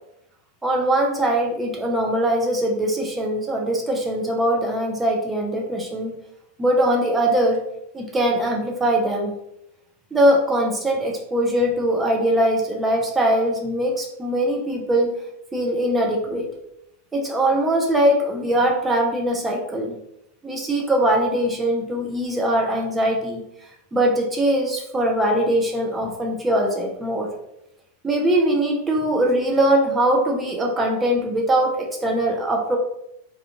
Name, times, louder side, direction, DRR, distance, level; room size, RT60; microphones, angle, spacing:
voice 1, 0.6-6.2 6.6-7.6 7.9-9.3 10.1-15.1 15.5-16.5 17.1-20.0 20.4-23.4 23.9-27.3 28.0-32.8, right 1 dB, 10° right, -1 dB, 0.5 m, -21 dB
3.3 x 2.4 x 2.8 m, 0.81 s
figure-of-eight pair, 90°, 0 cm